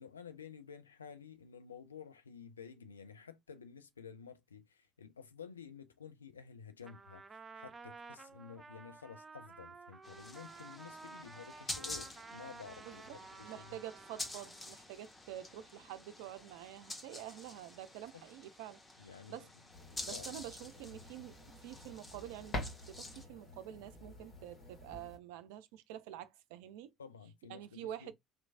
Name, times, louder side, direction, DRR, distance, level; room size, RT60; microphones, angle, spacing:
voice 1, 0.0-13.8 18.1-18.2 19.0-19.5 20.1-20.3 27.0-28.1, left 6 dB, 90° left, 0.4 m, -52 dB
Trumpet, 6.8-14.7, right 4 dB, 30° right, 0.6 m, -53 dB
sound 1, 10.0-23.2, left 2 dB, 25° left, 1.3 m, -49 dB
voice 2, 12.8-13.2 13.4-19.5 20.0-26.9 27.5-28.1, right 12 dB, 75° right, 0.4 m, -48 dB
sound 2, 19.7-25.2, left 1 dB, 50° left, 1.8 m, -47 dB
4.3 x 3.1 x 2.5 m
hypercardioid pair, 55°, 0 cm